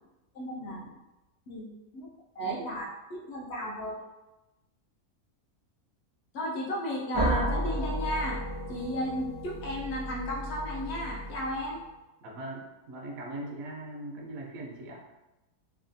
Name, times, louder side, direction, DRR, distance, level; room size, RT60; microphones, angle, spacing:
voice 1, 0.3-1.0 1.5-2.1 2.4-4.0 6.3-8.4 8.7-11.8, equal, 55° left, -3 dB, 0.8 m, -34 dB
sound 1, 7.1-11.8, right 1 dB, 20° left, 0.6 m, -33 dB
voice 2, 12.2-15.0, right 1 dB, 70° right, -1 dB, 1.0 m, -40 dB
3.3 x 2.3 x 2.5 m, 1.0 s
omnidirectional pair, 1.6 m